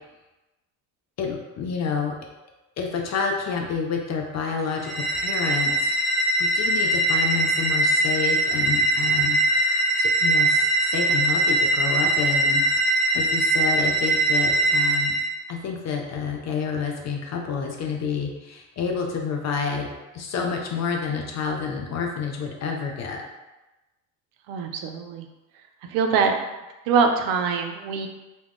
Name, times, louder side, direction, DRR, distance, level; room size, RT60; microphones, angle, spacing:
voice 1, 1.2-2.2 2.8-9.4 10.0-15.2 15.5-19.9 20.1-23.2, left 6 dB, 40° left, 1 dB, 0.5 m, -29 dB
sound 1, 4.8-15.3, right 2 dB, 15° left, 1.2 m, -22 dB
voice 2, 24.5-25.3 25.9-26.4 26.8-28.1, right 5 dB, 75° right, 4 dB, 0.6 m, -23 dB
2.3 x 2.1 x 3.4 m, 1.1 s
supercardioid pair, 80°, 44 cm